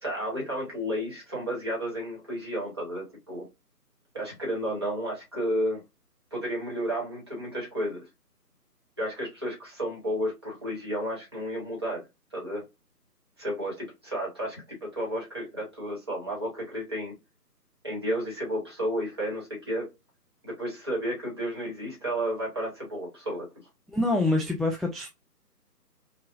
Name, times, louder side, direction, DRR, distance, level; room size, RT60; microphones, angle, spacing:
voice 1, 0.0-3.5 4.1-5.8 6.3-8.0 9.0-12.0 12.3-12.6 13.4-17.2 17.8-19.9 20.4-23.5, equal, 15° right, 1.0 m, -32 dB
voice 2, 23.9-25.1, left 2 dB, ahead, 0.3 m, -26 dB
5.5 x 2.1 x 2.4 m
figure-of-eight pair, 160°, 49 cm